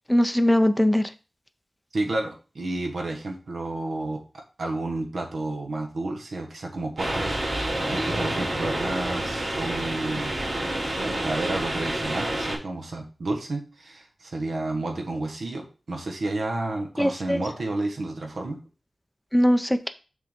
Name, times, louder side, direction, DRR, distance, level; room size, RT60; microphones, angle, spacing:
voice 1, 0.1-1.0 17.0-17.4 19.3-19.9, equal, 5° left, 8 dB, 0.5 m, -20 dB
voice 2, 1.9-10.4 11.2-18.6, right 2 dB, 75° right, 1 dB, 1.4 m, -31 dB
sound 1, 7.0-12.6, right 1 dB, 50° right, 4.2 m, -28 dB
6.8 x 3.9 x 5.0 m, 0.34 s
wide cardioid pair, 105°, 0 cm